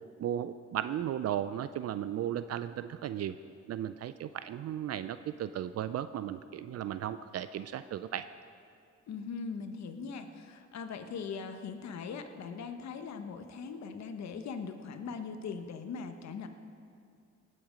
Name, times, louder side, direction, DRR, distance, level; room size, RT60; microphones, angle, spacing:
voice 1, 0.2-3.4 3.7-8.3, right 10 dB, 55° right, 12 dB, 0.4 m, -35 dB
voice 2, 9.1-16.5, left 5 dB, 65° left, 7 dB, 1.1 m, -40 dB
19.0 x 7.8 x 5.1 m, 2.4 s
cardioid pair, 90°, 30 cm